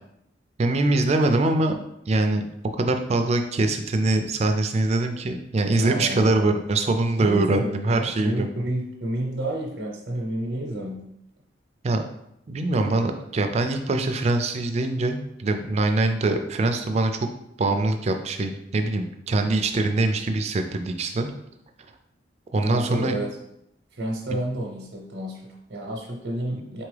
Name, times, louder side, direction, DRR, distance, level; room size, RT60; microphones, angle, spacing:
voice 1, 0.6-1.8 2.1-2.4 2.8-8.5 11.8-12.0 12.5-17.3 17.6-21.3 22.5-23.2 26.5-26.6, right 2 dB, 35° right, 6 dB, 0.4 m, -23 dB
voice 2, 5.8-6.3 7.2-11.0 22.6-23.3 23.9-26.8, right 1 dB, 85° right, -1 dB, 0.7 m, -30 dB
4.1 x 3.5 x 3.3 m, 0.79 s
head